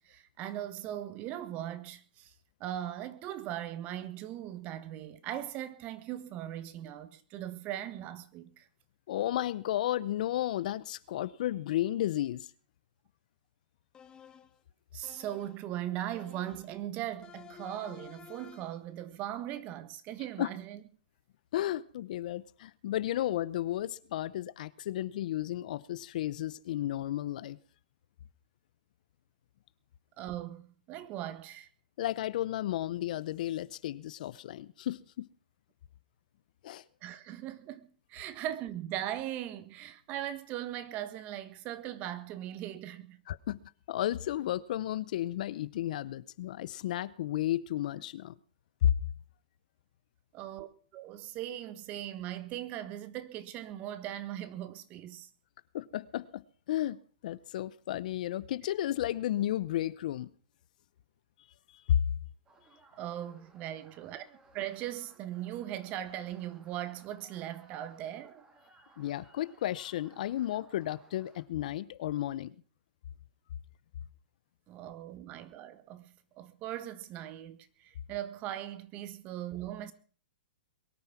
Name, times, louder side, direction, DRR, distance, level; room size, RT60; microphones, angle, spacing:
voice 1, 0.0-2.3 2.6-8.7 14.9-20.8 30.2-31.7 37.0-43.2 50.3-50.7 50.9-55.3 63.0-64.2 64.5-68.4 74.7-79.9, right 12 dB, 30° right, 1.5 m, -39 dB
voice 2, 9.1-12.5 20.4-20.5 21.5-27.6 32.0-35.3 36.6-36.8 43.3-43.6 43.9-48.3 48.8-48.9 55.7-56.4 56.7-57.0 57.2-60.3 61.9-62.0 69.0-72.5, left 12 dB, 60° left, 0.8 m, -33 dB
sound 1, 13.9-14.6 15.0-15.7 16.1-16.8 17.2-18.9, left 8 dB, 15° left, 1.4 m, -53 dB
sound 2, 62.5-71.4, right 3 dB, 15° right, 2.8 m, -62 dB
22.0 x 9.6 x 5.9 m
hypercardioid pair, 140°, 5 cm